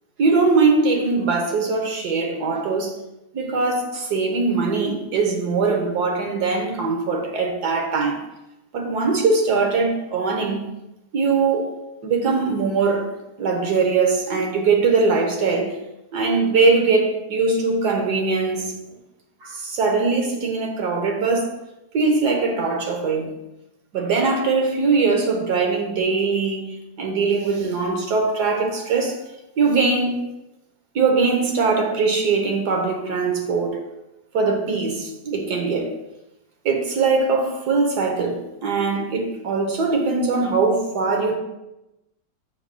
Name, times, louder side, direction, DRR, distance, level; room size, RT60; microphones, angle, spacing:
voice 1, 0.2-3.0 3.3-8.2 8.7-10.6 11.1-13.1 13.4-15.8 16.1-18.7 19.4-21.5 21.9-23.3 23.9-26.7 27.0-29.2 29.6-30.2 30.9-33.8 34.3-35.9 36.6-41.3, right 4 dB, 70° right, 1.6 m, -21 dB
7.6 x 6.5 x 2.2 m
omnidirectional pair, 1.8 m